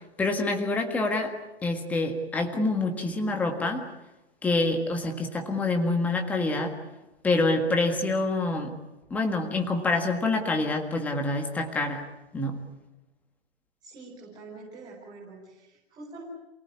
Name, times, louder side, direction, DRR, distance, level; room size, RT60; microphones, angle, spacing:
voice 1, 0.2-1.3 1.6-3.9 4.4-6.7 7.2-8.7 9.1-12.1 12.3-12.6, left 2 dB, 5° left, 4 dB, 1.7 m, -26 dB
voice 2, 13.8-16.2, right 3 dB, 10° right, -5 dB, 5.1 m, -45 dB
28.5 x 18.0 x 9.7 m, 1.0 s
hypercardioid pair, 165°, 33 cm